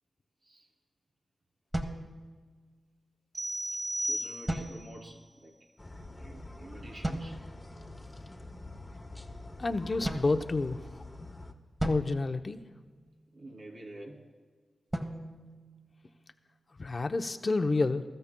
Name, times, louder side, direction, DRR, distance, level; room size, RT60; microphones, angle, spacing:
sound 1, 1.7-2.8 4.5-5.3 7.0-7.7 10.0-11.1 11.8-13.3 14.9-16.4, right 1 dB, 20° right, 1.3 m, -38 dB
sound 2, 3.3-4.9, right 1 dB, 45° right, 3.6 m, -35 dB
voice 1, 4.0-5.5 6.2-7.4 13.3-14.2, right 1 dB, 80° right, -1 dB, 2.8 m, -48 dB
sound 3, 5.8-11.5, left 2 dB, 20° left, 1.2 m, -46 dB
voice 2, 9.6-11.0 11.8-12.6 16.8-18.0, left 3 dB, 45° left, 8 dB, 0.7 m, -29 dB
22.0 x 13.5 x 2.2 m, 1.5 s
cardioid pair, 60°, 0 cm